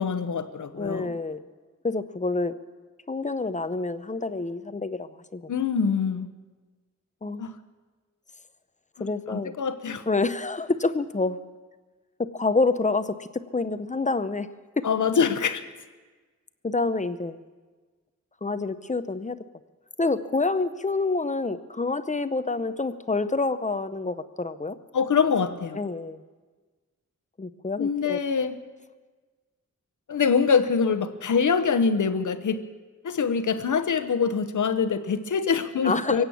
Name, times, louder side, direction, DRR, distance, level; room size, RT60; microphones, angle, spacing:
voice 1, 0.0-1.2 5.5-6.3 7.4-7.5 9.0-10.0 14.8-15.6 24.9-25.8 27.8-28.6 30.1-32.6 33.0-36.2, left 6 dB, 75° left, 11 dB, 1.0 m, -24 dB
voice 2, 0.8-1.4 1.8-2.5 3.1-5.5 7.2-7.5 9.0-9.5 10.1-11.4 12.2-14.5 14.8-14.9 16.6-17.4 18.4-19.4 20.0-24.8 25.8-26.2 27.4-28.2 35.8-36.2, left 3 dB, 25° left, 12 dB, 0.7 m, -27 dB
23.5 x 8.8 x 7.1 m, 1.4 s
wide cardioid pair, 85°, 30 cm